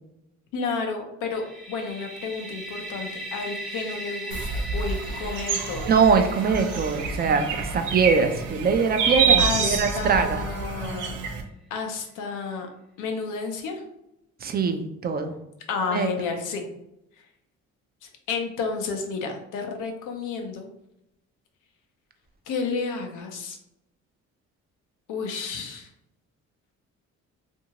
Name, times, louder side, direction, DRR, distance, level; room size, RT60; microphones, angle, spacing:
voice 1, 0.5-5.9 9.4-11.1 11.7-12.7 13.0-13.8 15.7-16.7 17.1-17.3 18.0-20.7 22.5-23.6 25.1-25.9, left 4 dB, 85° left, 4 dB, 0.7 m, -31 dB
sound 1, 1.3-11.0, right 1 dB, ahead, 0.7 m, -40 dB
sound 2, 4.3-11.4, right 5 dB, 80° right, 0.6 m, -27 dB
voice 2, 5.8-10.4 14.4-15.3 15.9-16.1, right 5 dB, 30° right, 7 dB, 0.4 m, -22 dB
2.6 x 2.6 x 2.9 m, 0.84 s
cardioid pair, 90°, 30 cm